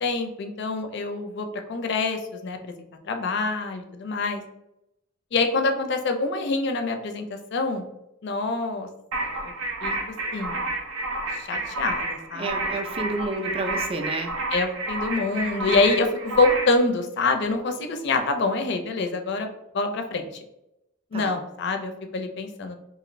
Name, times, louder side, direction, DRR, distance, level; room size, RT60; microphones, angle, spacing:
voice 1, 0.0-2.7 3.0-4.4 5.3-7.9 8.2-8.9 9.2-9.5 9.8-9.9 10.3-10.6 11.3-12.6 13.0-13.1 14.5-19.5 19.7-20.3 21.1-22.8, left 3 dB, 55° left, 6 dB, 0.4 m, -26 dB
sound 1, 9.1-16.8, right 2 dB, 85° right, 0.6 m, -30 dB
voice 2, 12.4-14.3 21.1-21.4, right 2 dB, 25° right, 4 dB, 0.3 m, -30 dB
2.5 x 2.5 x 3.0 m, 0.86 s
head